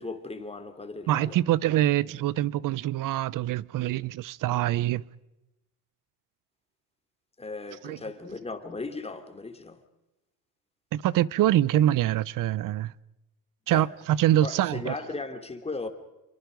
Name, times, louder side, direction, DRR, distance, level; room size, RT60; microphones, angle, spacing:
voice 1, 0.0-1.4 7.4-9.8 13.7-13.9 14.4-15.9, left 3 dB, 15° left, 2.9 m, -37 dB
voice 2, 1.1-5.0 7.8-8.0 10.9-12.9 13.7-14.9, right 13 dB, 60° right, 0.8 m, -25 dB
28.5 x 24.0 x 5.2 m
cardioid pair, 110°, 36 cm